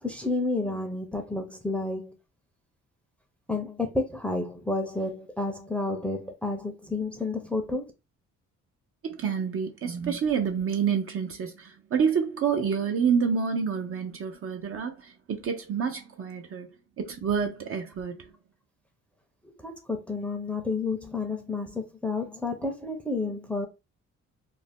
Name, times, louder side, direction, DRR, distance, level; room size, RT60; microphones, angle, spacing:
voice 1, 0.0-2.2 3.5-7.8 19.6-23.7, left 3 dB, 5° left, 0.6 m, -30 dB
voice 2, 9.0-16.7 17.0-18.3, right 6 dB, 45° right, 0.6 m, -28 dB
2.6 x 2.0 x 3.3 m
cardioid pair, 90°, 30 cm